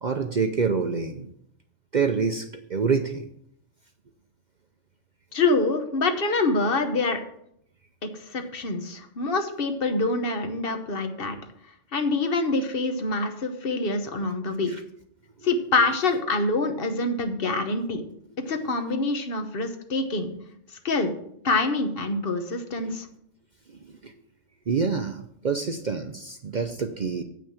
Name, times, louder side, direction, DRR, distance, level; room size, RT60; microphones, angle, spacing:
voice 1, 0.0-1.3 1.9-3.3 14.7-14.8 22.8-22.9 23.7-24.1 24.7-27.2, right 5 dB, 55° right, 6 dB, 0.5 m, -27 dB
voice 2, 5.3-7.2 8.0-11.4 11.9-14.7 15.4-18.0 18.5-20.3 20.8-21.1 21.4-23.1, left 3 dB, 45° left, 7 dB, 1.1 m, -25 dB
8.1 x 6.1 x 7.1 m, 0.72 s
omnidirectional pair, 1.4 m